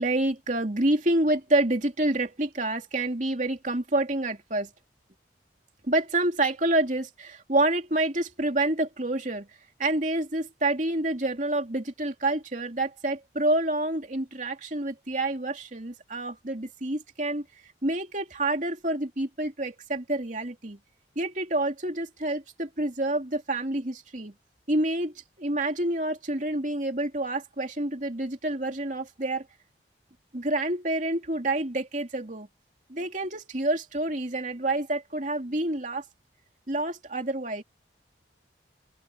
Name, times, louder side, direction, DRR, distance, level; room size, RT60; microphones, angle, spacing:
voice 1, 0.0-4.7 5.9-9.5 9.8-17.4 17.8-20.8 21.2-24.3 24.7-29.4 30.3-32.5 32.9-36.0 36.7-37.6, right 2 dB, 40° right, 2.9 m, -28 dB
open air
head